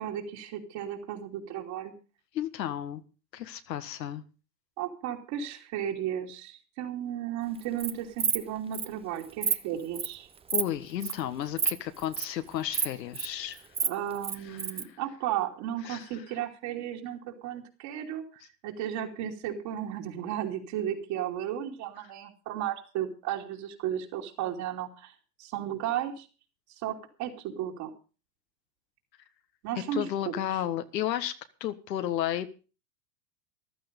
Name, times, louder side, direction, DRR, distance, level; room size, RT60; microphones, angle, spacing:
voice 1, 0.0-1.9 4.8-10.3 13.8-25.1 25.4-26.3 26.8-27.9 29.6-30.3, right 10 dB, 50° right, 0 dB, 3.0 m, -34 dB
voice 2, 2.3-3.0 3.3-4.2 10.5-13.6 14.5-14.6 15.9-16.0 29.9-31.3 31.6-32.7, left 11 dB, 85° left, 9 dB, 1.6 m, -32 dB
Insect, 7.6-7.9 8.2-8.4 8.7-8.9 9.2-9.5 9.9-10.1 10.5-10.7 11.0-11.2 11.6-11.7 12.0-12.2 12.7-13.3 13.6-14.8, right 6 dB, 10° right, 0.7 m, -28 dB
14.5 x 12.0 x 5.3 m, 0.35 s
hypercardioid pair, 120°, 49 cm